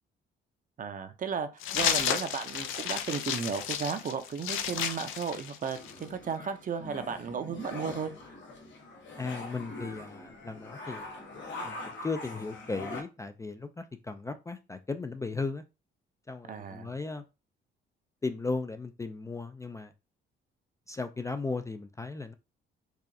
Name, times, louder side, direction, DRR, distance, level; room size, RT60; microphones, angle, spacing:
voice 1, 0.8-1.5 1.7-8.1 16.5-16.9, right 6 dB, 45° right, 0.6 m, -34 dB
sound 1, 1.6-6.0, left 9 dB, 90° left, 0.5 m, -32 dB
sound 2, 5.7-13.0, left 2 dB, 70° left, 1.0 m, -43 dB
voice 2, 9.2-11.2 11.6-15.6 16.3-17.2 18.2-19.9 20.9-22.3, left 3 dB, 15° left, 0.3 m, -36 dB
4.7 x 2.4 x 2.6 m
cardioid pair, 90°, 20 cm